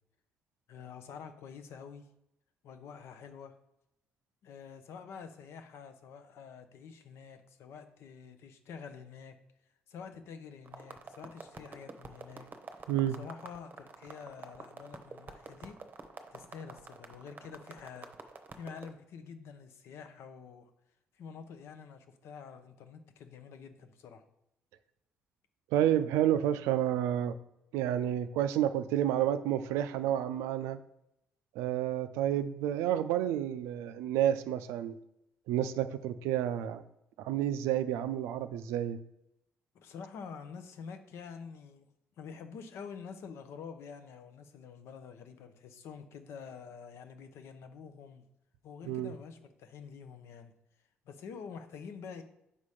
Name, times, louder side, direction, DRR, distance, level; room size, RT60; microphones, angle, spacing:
voice 1, 0.7-2.1 2.6-3.5 4.4-9.3 9.9-12.5 12.8-12.9 13.2-15.8 16.3-18.1 18.5-20.7 21.2-24.2 39.7-48.2 48.6-50.5 51.1-52.2, left 6 dB, 70° left, 8 dB, 0.7 m, -47 dB
sound 1, 10.7-18.9, right 4 dB, 40° right, 0.8 m, -48 dB
voice 2, 12.9-13.2 25.7-27.4 27.7-30.8 31.6-35.0 35.5-36.8 37.2-39.0 48.9-49.1, right 11 dB, 85° right, 11 dB, 0.3 m, -30 dB
5.4 x 4.1 x 4.9 m, 0.83 s
supercardioid pair, 65°, 5 cm